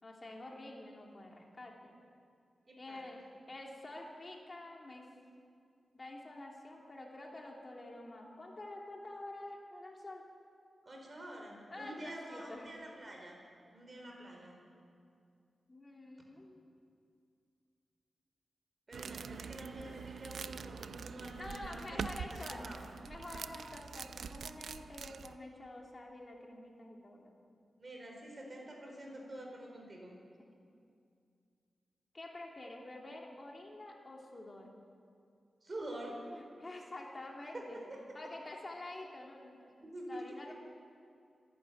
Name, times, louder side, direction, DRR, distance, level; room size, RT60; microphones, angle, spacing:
voice 1, 0.0-2.0 2.8-3.2 3.5-5.1 5.9-10.2 11.7-13.0 15.7-16.6 21.4-22.7 23.0-27.4 30.4-30.6 32.1-34.7 36.2-37.8 38.1-39.8 40.1-40.5, left 2 dB, 25° left, 0 dB, 3.1 m, -48 dB
voice 2, 2.7-3.0 10.8-13.4 13.7-14.6 18.9-22.8 27.8-30.2 35.6-36.3 37.5-38.0 38.5-38.6 39.8-40.2, right 1 dB, 30° right, 0 dB, 4.6 m, -47 dB
sound 1, 18.9-25.4, right 6 dB, 75° right, 0.6 m, -44 dB
26.0 x 12.0 x 9.4 m, 2.4 s
wide cardioid pair, 175°, 0 cm